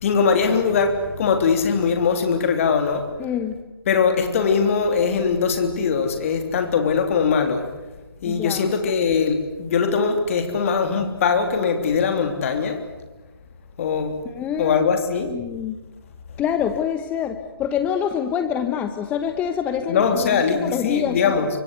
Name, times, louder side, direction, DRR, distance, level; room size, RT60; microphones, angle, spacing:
voice 1, 0.0-3.0 3.9-7.6 8.2-12.8 13.8-14.1 14.6-15.3 19.9-21.5, left 5 dB, 35° left, 6 dB, 3.3 m, -21 dB
voice 2, 3.2-3.6 8.2-8.7 14.2-14.8 15.2-15.8 16.4-21.4, left 8 dB, 10° left, 8 dB, 1.0 m, -26 dB
29.0 x 25.5 x 8.1 m, 1.1 s
figure-of-eight pair, 145°, 12 cm